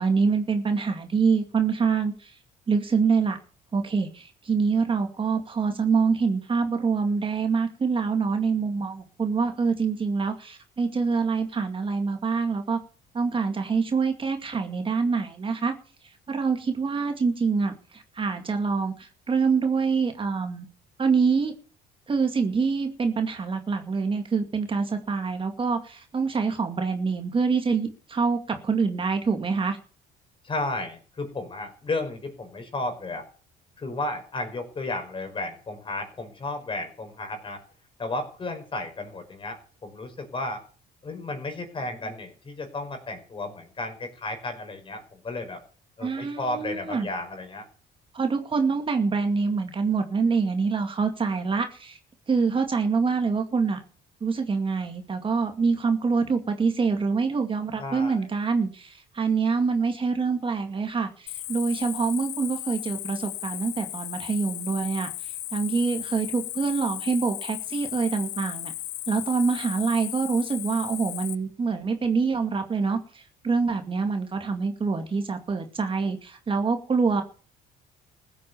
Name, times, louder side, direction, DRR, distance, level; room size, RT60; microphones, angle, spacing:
voice 1, 0.0-2.4 2.7-3.4 3.7-12.8 13.1-15.7 16.3-20.7 21.0-21.5 22.1-29.8 46.0-47.1 48.1-52.0 52.3-53.8 54.2-68.7 69.1-77.2, right 5 dB, 30° right, 6 dB, 2.3 m, -25 dB
voice 2, 30.4-33.3 33.8-37.6 38.0-40.6 41.0-45.6 46.0-47.6 57.8-58.2, left 2 dB, 30° left, 6 dB, 5.1 m, -33 dB
Cricket, 61.3-71.3, left 15 dB, 80° left, 0.9 m, -36 dB
15.5 x 8.7 x 7.0 m, 0.39 s
cardioid pair, 110°, 17 cm